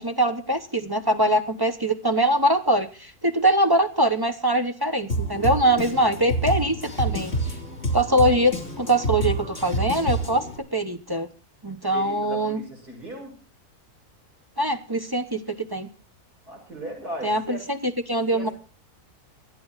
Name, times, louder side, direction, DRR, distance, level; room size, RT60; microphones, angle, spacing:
voice 1, 0.0-7.3 7.9-10.5 10.7-11.3 11.6-12.6 14.6-15.9 17.2-18.5, right 1 dB, 20° right, 7 dB, 0.7 m, -23 dB
Drum kit, 5.1-10.6, right 1 dB, 45° left, 3.4 m, -28 dB
voice 2, 11.9-13.3 16.5-17.6 18.3-18.5, right 1 dB, 75° right, 0 dB, 7.3 m, -37 dB
26.0 x 9.3 x 4.0 m, 0.36 s
omnidirectional pair, 1.6 m